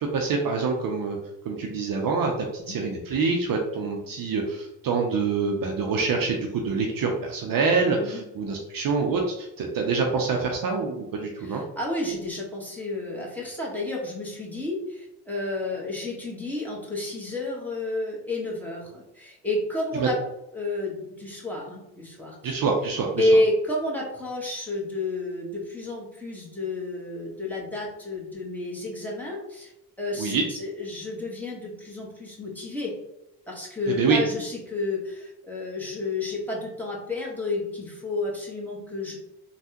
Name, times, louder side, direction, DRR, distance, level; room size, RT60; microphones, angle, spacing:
voice 1, 0.0-1.2 1.4-2.3 2.7-11.6 20.0-20.1 22.4-23.3 30.2-30.4 33.9-34.2, right 4 dB, 50° right, 1 dB, 0.6 m, -26 dB
voice 2, 7.9-8.2 11.4-20.2 20.5-22.6 23.2-29.7 30.0-32.9 33.5-39.2, left 2 dB, 5° left, -4 dB, 1.2 m, -30 dB
3.3 x 2.3 x 2.8 m, 0.91 s
supercardioid pair, 60°, 45 cm